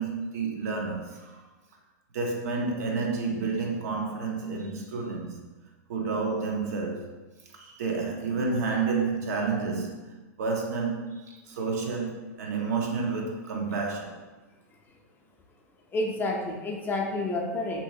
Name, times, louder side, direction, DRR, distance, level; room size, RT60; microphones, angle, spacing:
voice 1, 0.0-1.4 2.1-5.4 5.9-7.1 7.5-14.2, right 4 dB, 70° right, 0.7 m, -30 dB
voice 2, 15.9-17.8, left 2 dB, 20° left, 0.5 m, -29 dB
2.9 x 2.7 x 2.7 m
hypercardioid pair, 110°, 9 cm